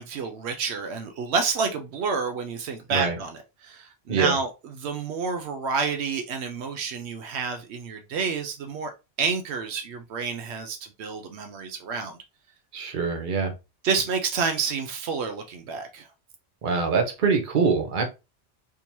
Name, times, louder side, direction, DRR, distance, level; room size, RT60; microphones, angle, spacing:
voice 1, 0.0-4.5 4.8-8.9 9.2-12.2 13.8-16.1, right 5 dB, 80° right, 0.9 m, -29 dB
voice 2, 12.7-13.5 16.6-18.0, right 5 dB, 50° right, 0.9 m, -24 dB
3.7 x 2.9 x 2.6 m
omnidirectional pair, 1.1 m